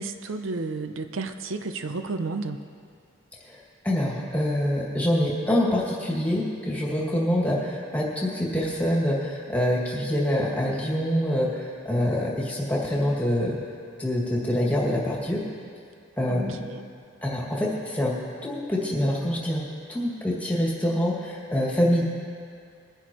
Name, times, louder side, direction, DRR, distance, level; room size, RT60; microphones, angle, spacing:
voice 1, 0.0-2.6 16.3-16.8, right 3 dB, 85° right, 7 dB, 0.6 m, -32 dB
voice 2, 3.8-13.6 14.0-15.4 16.2-16.6 17.2-18.1 18.4-19.6 19.9-22.0, equal, 10° left, -4 dB, 2.1 m, -25 dB
21.5 x 10.0 x 3.0 m, 2.3 s
head